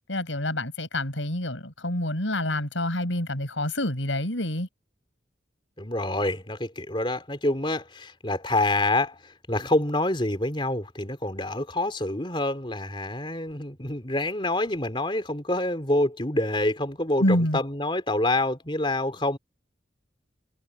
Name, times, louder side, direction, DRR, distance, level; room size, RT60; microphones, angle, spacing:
voice 1, 0.0-4.7 17.2-17.6, left 1 dB, 85° left, 7.1 m, -27 dB
voice 2, 5.8-19.4, left 1 dB, 25° left, 3.7 m, -27 dB
head